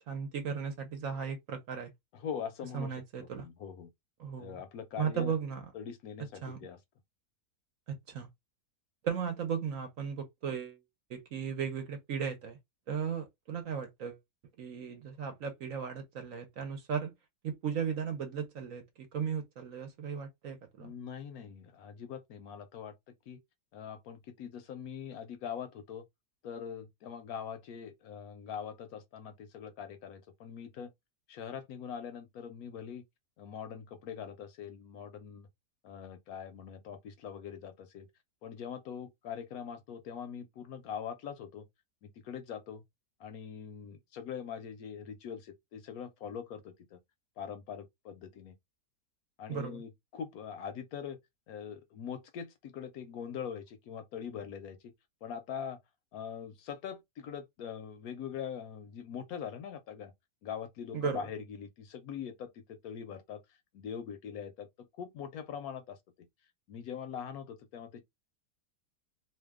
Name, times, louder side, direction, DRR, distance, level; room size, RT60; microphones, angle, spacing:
voice 1, 0.0-1.9 2.7-3.4 4.2-4.6 5.0-5.6 6.4-6.6 7.9-8.3 9.0-10.8 11.1-12.6 12.9-14.2 14.6-17.1 17.4-18.8 19.1-20.9 49.5-49.8 60.9-61.3, right 7 dB, 60° right, 1.0 m, -36 dB
voice 2, 2.1-3.9 4.4-5.4 5.7-6.8 20.8-22.9 23.3-23.4 23.7-26.0 26.4-30.9 31.3-33.0 33.4-35.5 35.8-38.1 38.4-41.7 42.0-42.8 43.2-47.0 47.4-48.5 49.4-51.2 51.5-54.8 55.2-55.8 56.1-60.1 60.4-66.0 66.7-68.0, left 7 dB, 70° left, 1.0 m, -42 dB
2.7 x 2.3 x 3.4 m
omnidirectional pair, 1.8 m